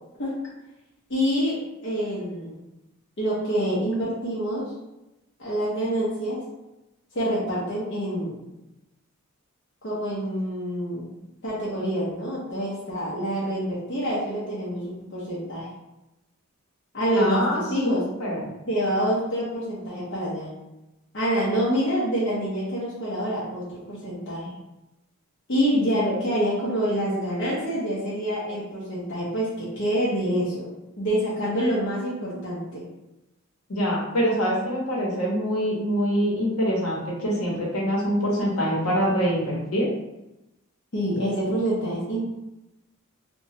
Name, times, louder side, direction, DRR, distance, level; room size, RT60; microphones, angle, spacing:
voice 1, 1.1-2.6 3.2-4.7 5.4-6.4 7.1-8.4 9.8-11.1 11.4-15.7 16.9-18.1 18.7-20.5 21.1-24.5 25.5-30.7 31.0-32.8 40.9-42.3, equal, 55° left, -7 dB, 0.7 m, -26 dB
voice 2, 17.2-18.5 33.7-39.9, equal, 80° left, -4 dB, 0.9 m, -25 dB
2.9 x 2.2 x 2.8 m, 0.93 s
head